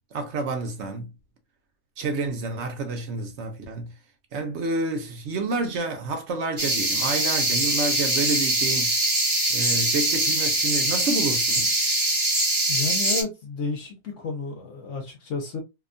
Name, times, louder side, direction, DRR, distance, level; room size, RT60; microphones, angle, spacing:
voice 1, 0.1-1.1 2.0-3.9 4.3-8.9 9.5-11.7, right 3 dB, 60° right, 0.8 m, -29 dB
sound 1, 6.6-13.2, right 1 dB, 25° right, 0.7 m, -23 dB
voice 2, 12.7-15.6, left 4 dB, 65° left, 1.0 m, -31 dB
2.8 x 2.2 x 2.5 m
omnidirectional pair, 1.5 m